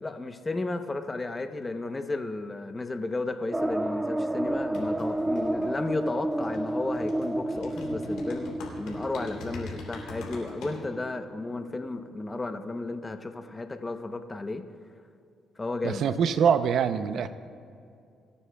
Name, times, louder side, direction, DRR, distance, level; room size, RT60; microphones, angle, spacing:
voice 1, 0.0-14.6 15.6-16.0, left 2 dB, 20° left, 7 dB, 0.8 m, -33 dB
sound 1, 3.5-12.0 12.4-12.5 12.7-12.8, right 1 dB, 10° right, 0.3 m, -31 dB
sound 2, 4.4-10.8, left 3 dB, 85° left, 3.0 m, -43 dB
voice 2, 15.8-17.3, right 7 dB, 70° right, 12 dB, 0.6 m, -24 dB
25.0 x 9.8 x 2.3 m, 2.5 s
cardioid pair, 90°, 0 cm